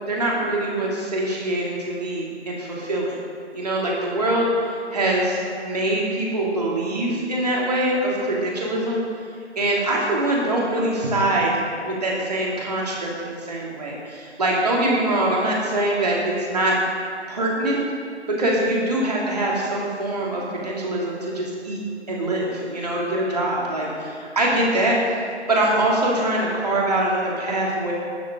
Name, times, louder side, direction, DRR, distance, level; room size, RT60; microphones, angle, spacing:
voice 1, 0.0-3.2 3.5-4.6 4.9-9.0 9.6-16.8 17.3-17.8 18.3-21.8 22.1-25.0 25.5-27.9, right 1 dB, 35° right, -3 dB, 2.8 m, -23 dB
17.0 x 12.5 x 3.8 m, 2.2 s
figure-of-eight pair, 155°, 35 cm